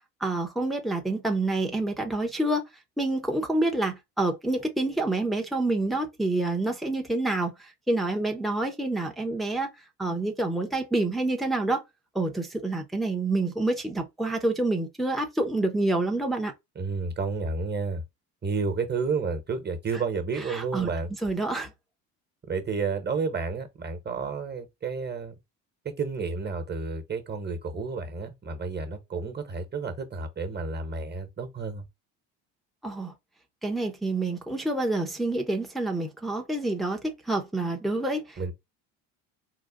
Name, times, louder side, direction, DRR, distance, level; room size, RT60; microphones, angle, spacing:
voice 1, 0.2-2.7 3.0-9.7 10.0-11.8 12.1-16.5 20.5-20.9 21.2-21.7 32.8-33.1 33.6-38.5, right 2 dB, ahead, 0.9 m, -27 dB
voice 2, 16.7-18.0 18.4-21.1 22.5-25.3 25.8-31.8 38.4-38.5, right 4 dB, 25° right, 1.3 m, -31 dB
3.9 x 2.4 x 3.7 m
supercardioid pair, 90°, 38 cm